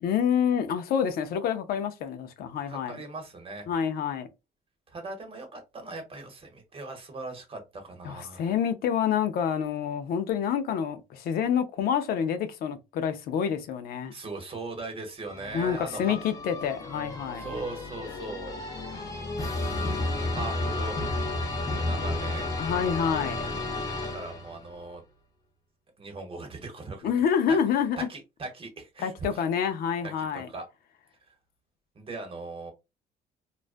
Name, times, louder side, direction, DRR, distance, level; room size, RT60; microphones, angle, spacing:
voice 1, 0.0-3.0 3.7-4.3 8.0-14.1 15.5-17.5 22.6-23.4 27.0-28.1 29.0-30.5, left 8 dB, 65° left, 0.4 m, -27 dB
voice 2, 2.7-3.7 4.9-8.5 14.1-16.2 17.4-18.6 20.0-21.1 21.7-22.5 23.8-25.0 26.0-27.1 27.5-27.6 28.0-29.4 30.0-30.7 31.3-31.4 31.9-32.7, right 3 dB, 35° right, 0.9 m, -39 dB
sound 1, 15.2-24.7, left 2 dB, 20° left, 0.7 m, -32 dB
2.4 x 2.2 x 2.4 m
cardioid pair, 110°, 17 cm